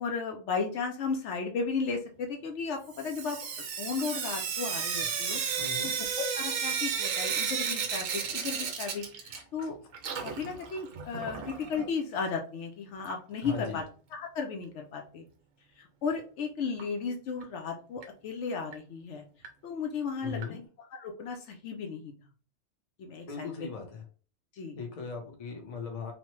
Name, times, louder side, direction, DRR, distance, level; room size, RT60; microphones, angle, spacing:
voice 1, 0.0-3.4 3.8-5.4 5.8-9.8 10.2-13.8 14.1-15.2 15.8-19.2 19.6-20.6 20.9-22.1 23.0-23.5 24.5-24.8, left 5 dB, 70° left, 3 dB, 0.8 m, -35 dB
Sink (filling or washing) / Drip, 2.9-9.7 9.9-11.9 13.0-13.1 13.5-13.6 13.8-13.9 16.8-16.9 17.4-17.5 18.0-18.1 18.7-18.8 19.4-19.5 20.4-20.5, right 7 dB, 85° right, 1.0 m, -33 dB
voice 2, 5.6-5.9 13.4-13.8 20.2-20.6 23.3-24.0 24.8-26.1, left 5 dB, 40° left, 2 dB, 0.6 m, -38 dB
3.1 x 2.1 x 3.0 m, 0.39 s
omnidirectional pair, 1.3 m